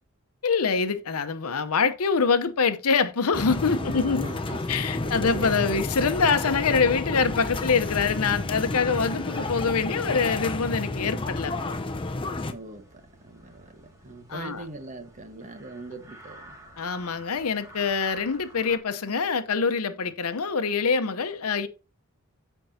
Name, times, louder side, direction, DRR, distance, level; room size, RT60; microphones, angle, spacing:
voice 1, 0.4-4.3 4.7-11.5 14.3-14.6 16.8-21.7, left 5 dB, 80° left, 0.7 m, -25 dB
sound 1, 3.3-12.5, left 2 dB, 25° left, 0.6 m, -31 dB
voice 2, 3.6-4.6 4.9-5.8 6.7-6.9 12.5-12.8 13.2-16.6, right 2 dB, 35° right, 1.3 m, -40 dB
sound 2, 6.2-18.8, right 1 dB, 15° right, 1.9 m, -51 dB
13.5 x 4.5 x 2.7 m
head